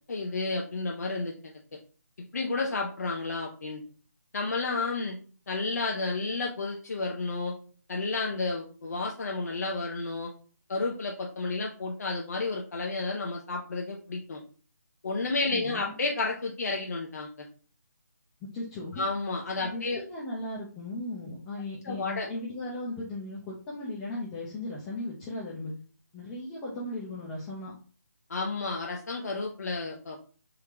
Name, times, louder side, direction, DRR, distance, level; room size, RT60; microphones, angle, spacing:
voice 1, 0.1-1.5 2.3-3.8 4.3-5.2 5.5-7.6 7.9-10.3 10.7-14.4 15.0-17.5 19.0-20.0 21.8-22.3 28.3-30.2, left 3 dB, 60° left, 0 dB, 0.6 m, -31 dB
voice 2, 15.5-15.9 18.4-19.0 19.6-25.7 26.1-27.7, left 2 dB, 15° left, -5 dB, 0.5 m, -37 dB
3.8 x 2.2 x 2.9 m, 0.40 s
figure-of-eight pair, 155°, 10 cm